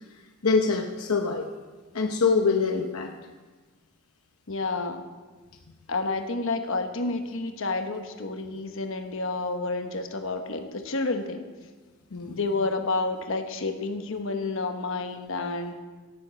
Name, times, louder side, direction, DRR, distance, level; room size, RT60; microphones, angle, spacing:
voice 1, 0.4-1.5 1.9-3.1 12.1-12.4, left 4 dB, 75° left, 4 dB, 0.8 m, -24 dB
voice 2, 4.5-5.0 5.9-11.4 12.3-15.7, left 3 dB, 60° left, 6 dB, 1.1 m, -30 dB
16.0 x 9.0 x 5.2 m, 1.3 s
head